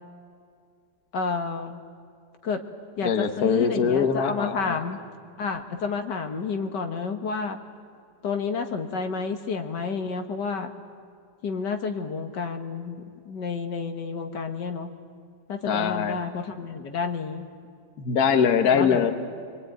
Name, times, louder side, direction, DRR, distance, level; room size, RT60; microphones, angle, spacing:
voice 1, 1.1-1.8 2.4-2.6 3.0-5.0 5.4-7.6 8.2-10.7 11.4-14.9 15.5-17.5 18.7-19.1, left 5 dB, 75° left, 6 dB, 2.0 m, -30 dB
voice 2, 3.0-4.8 15.7-16.2 18.0-19.1, left 7 dB, 60° left, 7 dB, 1.7 m, -22 dB
26.0 x 22.0 x 9.2 m, 2.3 s
omnidirectional pair, 1.9 m